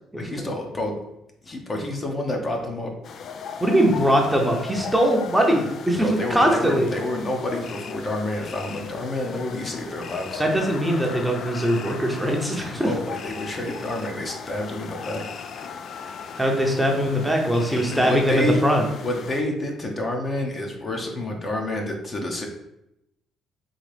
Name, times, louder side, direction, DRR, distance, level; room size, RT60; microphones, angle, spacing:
voice 1, 0.2-0.9 1.4-2.9 6.0-10.4 12.7-15.2 17.7-18.6 18.9-22.5, left 1 dB, 35° left, 1 dB, 0.8 m, -29 dB
sound 1, 3.0-19.4, left 6 dB, 60° left, 0.3 m, -37 dB
voice 2, 3.6-6.9 10.4-12.9 16.4-18.8, equal, 5° right, 1 dB, 0.7 m, -21 dB
3.9 x 2.8 x 3.3 m, 0.84 s
cardioid pair, 85°, 0 cm